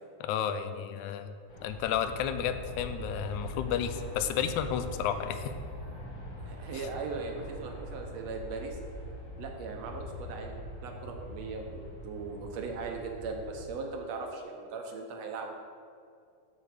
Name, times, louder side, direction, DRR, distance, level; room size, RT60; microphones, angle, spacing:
voice 1, 0.2-1.3 1.6-5.4 6.7-6.9, left 9 dB, 80° left, 10 dB, 1.9 m, -32 dB
Aircraft, 1.5-13.7, left 1 dB, 45° left, 1.2 m, -42 dB
voice 2, 6.4-8.8 9.4-15.5, right 4 dB, 70° right, 2 dB, 1.8 m, -39 dB
13.5 x 4.6 x 4.9 m, 2.4 s
omnidirectional pair, 3.6 m